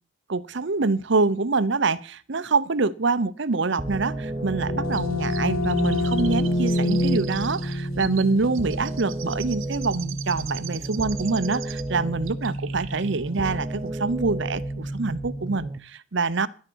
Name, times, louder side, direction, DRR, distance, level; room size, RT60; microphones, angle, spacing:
voice 1, 0.3-16.5, right 3 dB, 55° right, 0.7 m, -25 dB
sound 1, 3.8-15.8, right 1 dB, 20° right, 0.9 m, -32 dB
sound 2, 4.1-9.7, left 1 dB, 70° left, 1.3 m, -27 dB
Chirp tweet, 4.9-12.0 12.3-13.2 13.4-13.5, right 13 dB, 75° right, 1.0 m, -41 dB
12.5 x 10.0 x 6.2 m
head